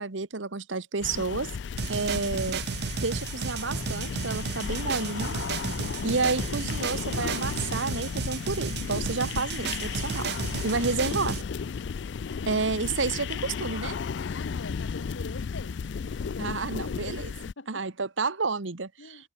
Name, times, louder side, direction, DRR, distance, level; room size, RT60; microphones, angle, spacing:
voice 1, 0.0-1.5 1.9-2.6 3.0-5.4 6.0-10.3 10.6-11.4 12.5-14.0 16.4-17.3 17.7-19.3, right 4 dB, 75° right, 1.3 m, -30 dB
sound 1, 1.0-17.5, left 6 dB, 60° left, 0.4 m, -34 dB
sound 2, 1.8-11.4, right 6 dB, 55° right, 0.5 m, -34 dB
voice 2, 14.3-15.8 16.0-17.8 19.0-19.2, left 3 dB, 80° left, 1.5 m, -45 dB
head